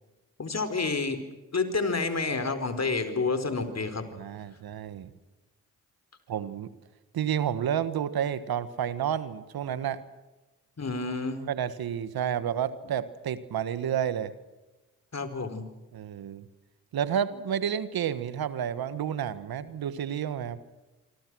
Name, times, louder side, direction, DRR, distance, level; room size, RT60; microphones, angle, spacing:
voice 1, 0.4-1.2 1.5-4.1 10.8-11.4 15.1-15.6, left 4 dB, 45° left, 9 dB, 4.5 m, -29 dB
voice 2, 4.1-5.1 6.3-6.7 7.1-10.0 11.4-14.3 15.9-16.4 16.9-20.6, right 9 dB, 75° right, 14 dB, 1.5 m, -30 dB
26.0 x 25.0 x 6.3 m, 1.1 s
supercardioid pair, 40°, 37 cm